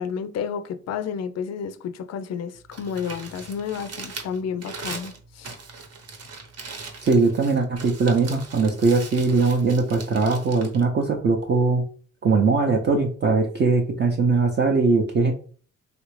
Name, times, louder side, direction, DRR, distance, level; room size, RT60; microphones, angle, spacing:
voice 1, 0.0-5.5, left 7 dB, 60° left, 0.4 m, -31 dB
Crumpling crinkling, 2.6-11.7, right 4 dB, 55° right, 0.9 m, -40 dB
voice 2, 7.0-11.8 12.2-15.3, right 4 dB, 35° right, 0.5 m, -20 dB
3.3 x 2.5 x 3.1 m
cardioid pair, 90°, 30 cm